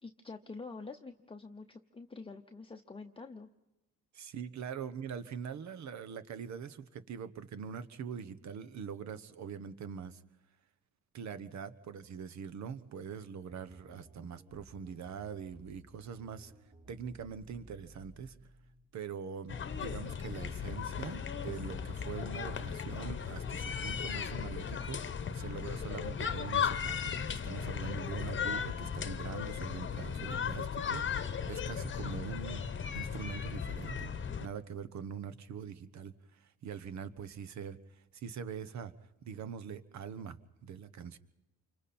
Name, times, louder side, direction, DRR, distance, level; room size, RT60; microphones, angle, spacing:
voice 1, 0.0-3.5, left 3 dB, 20° left, 4 dB, 0.8 m, -47 dB
voice 2, 4.1-10.2 11.1-16.5 16.9-18.4 18.9-25.0 25.3-32.6 32.9-34.1 34.4-38.9 39.2-41.2, right 7 dB, 65° right, 13 dB, 1.2 m, -43 dB
sound 1, 13.5-18.9, equal, 40° right, 5.6 m, -58 dB
sound 2, 19.5-34.5, left 7 dB, 40° left, 1.0 m, -36 dB
28.5 x 25.0 x 4.3 m, 0.96 s
cardioid pair, 90°, 30 cm